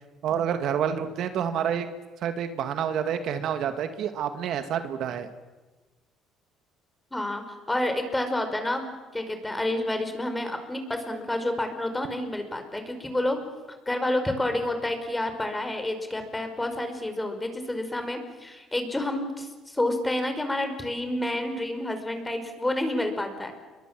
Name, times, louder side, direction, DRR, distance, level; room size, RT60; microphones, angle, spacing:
voice 1, 0.2-1.9 2.2-5.3, right 8 dB, 65° right, 8 dB, 2.0 m, -28 dB
voice 2, 7.1-8.9 9.1-13.4 13.9-23.5, left 1 dB, 10° left, 7 dB, 5.1 m, -29 dB
29.0 x 23.0 x 7.6 m, 1.2 s
cardioid pair, 95°, 0 cm